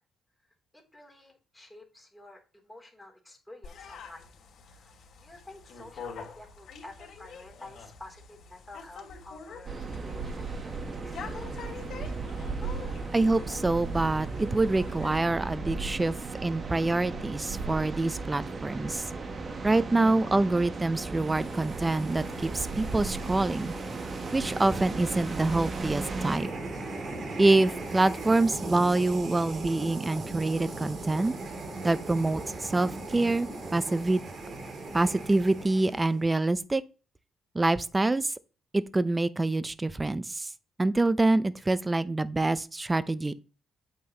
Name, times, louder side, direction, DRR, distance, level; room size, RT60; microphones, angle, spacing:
voice 1, 0.9-4.3 4.7-4.9 5.2-11.2, left 2 dB, 5° left, 3.2 m, -50 dB
sound 1, 3.6-15.2, left 6 dB, 65° left, 2.9 m, -46 dB
sound 2, 9.7-26.4, right 4 dB, 40° right, 1.3 m, -36 dB
voice 2, 13.1-16.1 16.4-19.0 19.6-23.7 24.3-26.5 27.4-31.3 31.8-34.2 34.9-36.8 37.5-38.3 38.7-40.5 40.8-43.3, right 2 dB, 20° right, 0.6 m, -26 dB
sound 3, 20.9-36.3, right 2 dB, 55° right, 2.4 m, -39 dB
8.5 x 7.7 x 3.0 m
cardioid pair, 90°, 0 cm